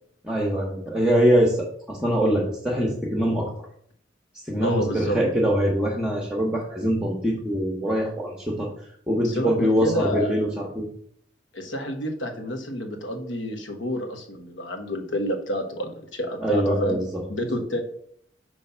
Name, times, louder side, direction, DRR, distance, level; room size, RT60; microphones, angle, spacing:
voice 1, 0.2-3.5 4.4-8.7 9.1-10.8 16.4-17.2, equal, 5° right, -3 dB, 0.9 m, -23 dB
voice 2, 4.6-5.2 9.2-10.3 11.5-17.0 17.3-17.8, equal, 85° left, 4 dB, 1.1 m, -29 dB
5.5 x 3.2 x 5.4 m, 0.64 s
head